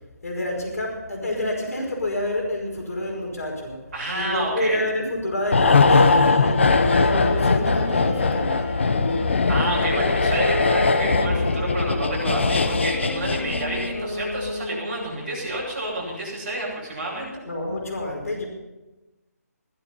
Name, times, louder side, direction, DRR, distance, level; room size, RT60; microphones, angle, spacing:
voice 1, 0.2-3.8 4.1-8.6 17.4-18.5, left 1 dB, 65° left, 0 dB, 5.2 m, -28 dB
voice 2, 3.9-4.8 9.5-17.4, right 1 dB, 35° right, -5 dB, 7.1 m, -29 dB
sound 1, 5.5-14.1 14.3-14.5, left 4 dB, 45° left, 0.9 m, -20 dB
Wind instrument woodwind instrument, 6.8-15.1, left 1 dB, 20° left, 1.6 m, -33 dB
16.0 x 12.5 x 5.7 m, 1.1 s
hypercardioid pair, 180°, 9 cm